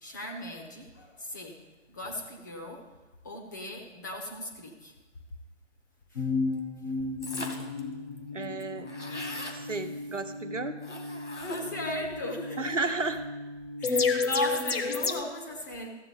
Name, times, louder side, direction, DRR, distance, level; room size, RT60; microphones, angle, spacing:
voice 1, 0.0-2.9 3.2-4.9 6.1-6.3 9.6-9.7 11.5-12.9 13.8-15.9, left 1 dB, 15° left, 1 dB, 0.8 m, -37 dB
sound 1, 6.2-15.2, left 4 dB, 55° left, 1.1 m, -33 dB
sound 2, 7.2-7.8 8.2-8.3 8.4-9.6 10.8-11.8, left 1 dB, 85° left, 2.0 m, -39 dB
voice 2, 8.3-8.9 9.7-10.8 12.6-13.2, right 3 dB, 80° right, 8 dB, 1.1 m, -32 dB
14.5 x 7.4 x 4.0 m, 1.2 s
figure-of-eight pair, 145°, 36 cm